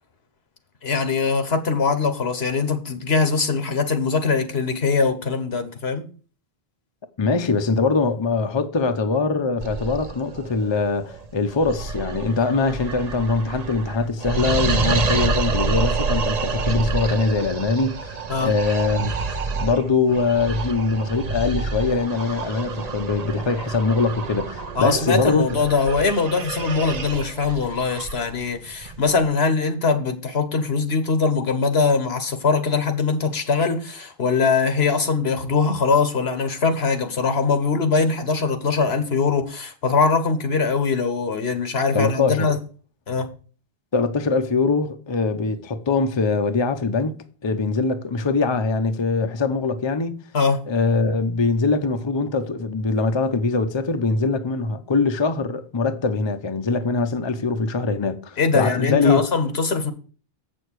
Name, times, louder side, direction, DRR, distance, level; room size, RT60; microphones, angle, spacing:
voice 1, 0.8-6.0 18.3-18.5 24.7-42.6 43.1-43.3 50.3-50.6 58.4-59.9, left 4 dB, 80° left, 1.5 m, -22 dB
voice 2, 7.2-25.4 41.9-42.5 43.9-47.1 47.4-50.2 50.7-59.2, left 4 dB, 30° left, 0.7 m, -22 dB
sound 1, 9.6-29.3, right 4 dB, 45° right, 0.7 m, -28 dB
7.8 x 6.4 x 4.6 m
omnidirectional pair, 1.0 m